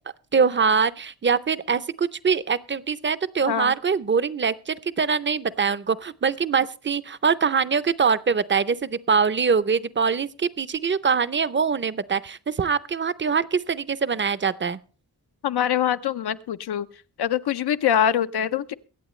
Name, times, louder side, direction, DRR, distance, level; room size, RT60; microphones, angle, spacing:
voice 1, 0.3-14.8, right 6 dB, 30° right, 17 dB, 0.6 m, -23 dB
voice 2, 15.4-16.9 17.2-18.7, left 9 dB, 80° left, 12 dB, 0.7 m, -24 dB
22.5 x 8.7 x 3.1 m, 0.36 s
wide cardioid pair, 115°, 38 cm